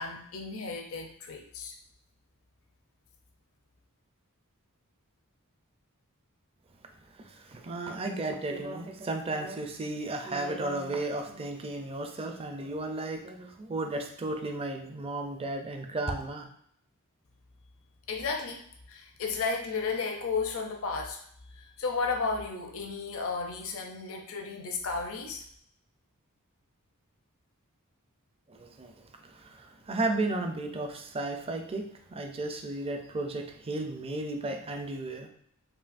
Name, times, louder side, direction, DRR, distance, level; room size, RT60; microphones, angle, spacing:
voice 1, 0.0-1.7 18.1-18.6 18.9-21.2 21.5-25.4, left 4 dB, 65° left, 3 dB, 0.6 m, -33 dB
voice 2, 7.1-16.5 28.5-35.3, right 2 dB, 25° right, 4 dB, 0.4 m, -34 dB
5.5 x 2.3 x 2.5 m, 0.67 s
head